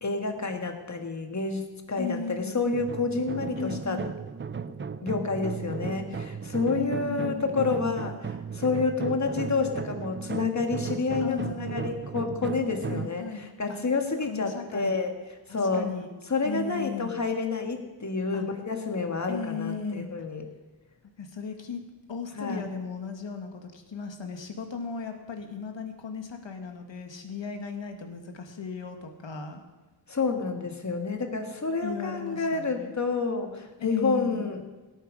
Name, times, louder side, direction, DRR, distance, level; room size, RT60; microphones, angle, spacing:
voice 1, 0.0-4.0 5.0-8.1 8.5-15.1 15.5-15.9 16.3-20.5 22.4-22.7 30.1-34.6, left 4 dB, 35° left, 5 dB, 1.7 m, -29 dB
voice 2, 2.0-2.6 3.6-4.1 6.7-8.2 11.2-12.0 12.9-13.8 14.3-15.0 15.5-16.1 16.4-17.2 18.3-18.5 19.3-20.1 21.2-21.8 22.1-29.6 31.8-33.0 33.8-34.5, left 5 dB, 65° left, 5 dB, 1.9 m, -36 dB
sound 1, 2.7-13.1, right 6 dB, 25° right, 0.4 m, -36 dB
17.5 x 9.1 x 5.0 m, 1.2 s
wide cardioid pair, 95°, 48 cm